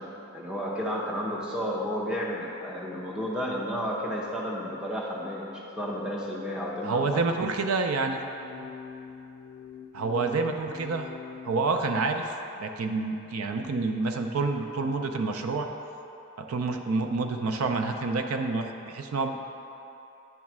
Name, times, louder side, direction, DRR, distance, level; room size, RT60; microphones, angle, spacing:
voice 1, 0.0-7.3, equal, 5° right, -4 dB, 0.7 m, -32 dB
voice 2, 6.8-8.2 8.5-8.7 9.9-11.1 11.4-15.7 16.4-19.4, right 3 dB, 85° right, 5 dB, 0.5 m, -28 dB
sound 1, 8.3-11.5, left 6 dB, 85° left, 0.4 m, -44 dB
9.1 x 3.2 x 6.0 m, 2.9 s
head